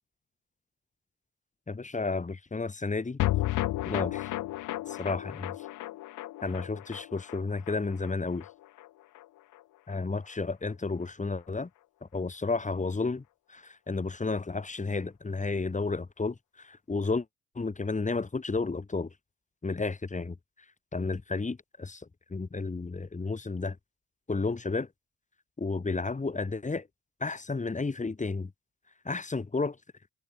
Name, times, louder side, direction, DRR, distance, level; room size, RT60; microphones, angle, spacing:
voice 1, 1.7-3.2 3.8-4.3 4.9-5.5 6.4-8.5 9.9-11.7 12.0-13.2 13.5-17.3 17.5-19.1 19.6-20.4 20.9-23.8 24.3-24.9 25.6-26.9 27.2-28.5 29.0-29.8, left 3 dB, 25° left, 4.4 m, -32 dB
sound 1, 3.2-9.6 9.9-10.0 10.3-10.4, left 15 dB, 85° left, 1.9 m, -34 dB
cardioid pair, 90°, 30 cm